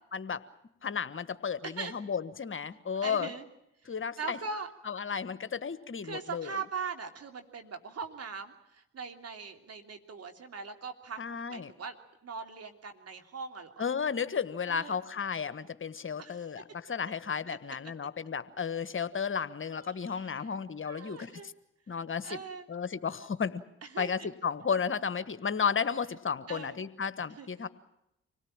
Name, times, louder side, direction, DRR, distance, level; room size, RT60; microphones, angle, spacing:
voice 1, 0.8-3.3 3.9-4.4 4.9-6.5 11.2-11.7 13.8-21.3 21.9-22.4 22.7-23.6 24.0-27.7, left 6 dB, 45° left, 13 dB, 1.4 m, -33 dB
voice 2, 3.0-3.4 3.8-4.7 6.0-11.2 11.5-12.0 12.2-13.8 14.7-15.0 16.2-16.5 17.5-17.6 19.7-20.5 20.9-21.5 22.2-22.7 23.8-24.3 26.5-26.8 27.4-27.5, right 5 dB, 55° right, 5 dB, 2.9 m, -41 dB
26.0 x 18.0 x 8.8 m, 0.83 s
hypercardioid pair, 45°, 29 cm